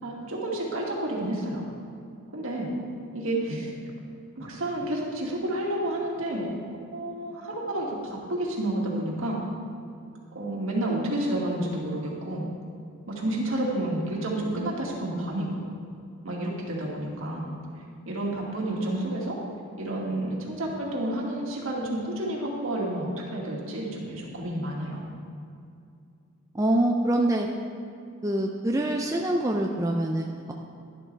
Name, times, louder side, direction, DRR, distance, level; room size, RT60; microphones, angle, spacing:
voice 1, 0.0-1.6 2.3-2.7 3.1-3.8 4.4-6.5 6.9-9.4 10.3-12.5 13.1-15.7 16.2-17.5 18.1-19.4 19.8-25.0, right 1 dB, 70° right, -2 dB, 2.0 m, -30 dB
voice 2, 26.5-27.5 28.2-30.5, right 1 dB, 15° right, 1 dB, 0.4 m, -25 dB
12.0 x 11.0 x 3.3 m, 2.4 s
head